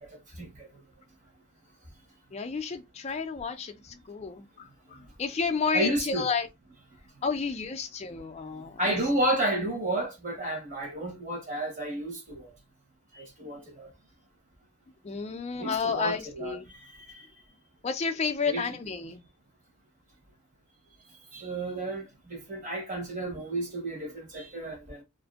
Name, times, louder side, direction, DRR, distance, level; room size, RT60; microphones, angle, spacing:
voice 1, 0.0-0.7 5.7-6.3 8.8-12.5 13.1-13.9 15.6-17.2 18.5-18.7 21.3-25.0, right 1 dB, 35° right, 0.9 m, -32 dB
voice 2, 2.3-6.5 7.2-9.0 13.4-13.6 15.0-16.7 17.8-19.2, left 5 dB, 30° left, 0.3 m, -31 dB
2.6 x 2.5 x 2.3 m
head